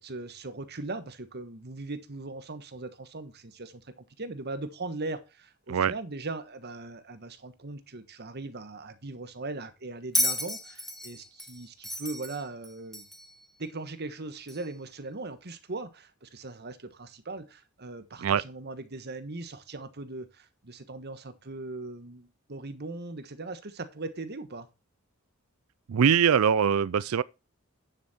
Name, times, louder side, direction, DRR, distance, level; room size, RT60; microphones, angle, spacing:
voice 1, 0.0-13.1 13.6-24.7, right 2 dB, 50° right, 1.4 m, -39 dB
Bell, 10.1-13.3 14.5-14.6, left 1 dB, ahead, 1.8 m, -32 dB
voice 2, 25.9-27.2, right 7 dB, 85° right, 0.4 m, -22 dB
9.8 x 7.4 x 4.3 m
head